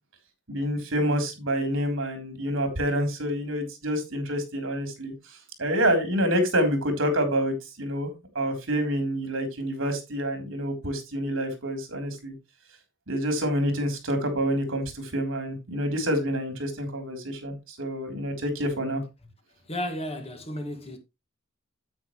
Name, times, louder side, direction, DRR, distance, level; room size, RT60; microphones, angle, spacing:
voice 1, 0.5-8.1 8.3-12.3 13.1-19.0, equal, 70° right, 3.5 m, -27 dB
voice 2, 19.6-21.0, left 1 dB, 30° left, 1.9 m, -33 dB
9.6 x 8.7 x 3.1 m
head